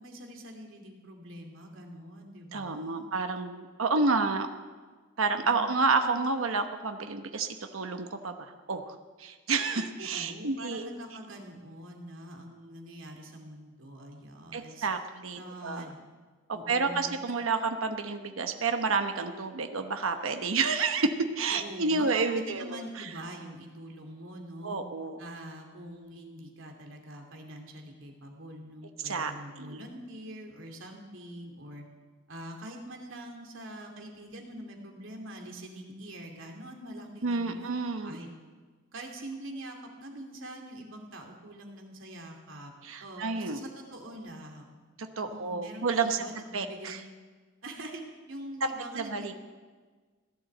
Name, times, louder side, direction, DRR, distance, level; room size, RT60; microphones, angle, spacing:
voice 1, 0.0-3.1 5.4-6.2 10.0-14.9 15.4-16.0 16.5-17.2 21.5-24.8 25.2-31.8 32.3-37.7 38.0-38.3 38.9-42.7 43.0-44.7 45.2-47.0 47.6-49.3, right 1 dB, 75° right, 2 dB, 2.7 m, -44 dB
voice 2, 2.5-4.5 5.2-10.9 14.5-15.9 16.5-21.1 21.4-23.1 24.6-25.2 29.0-29.3 29.6-29.8 37.2-38.2 42.8-43.6 45.0-46.2 46.5-47.0 48.9-49.3, right 4 dB, 90° right, 6 dB, 1.0 m, -30 dB
16.5 x 11.0 x 7.8 m, 1.4 s
head